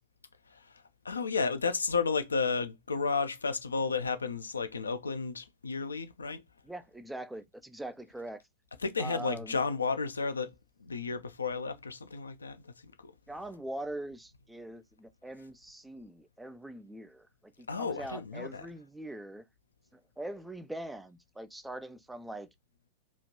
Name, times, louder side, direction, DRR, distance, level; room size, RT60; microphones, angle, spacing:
voice 1, 1.0-6.4 8.8-10.5 10.8-13.1 17.7-18.7, left 4 dB, 75° left, 0.4 m, -32 dB
voice 2, 6.6-8.4 9.0-9.6 13.3-19.4 19.9-22.5, right 1 dB, 5° right, 0.3 m, -42 dB
3.0 x 2.4 x 2.6 m
figure-of-eight pair, 95°, 0 cm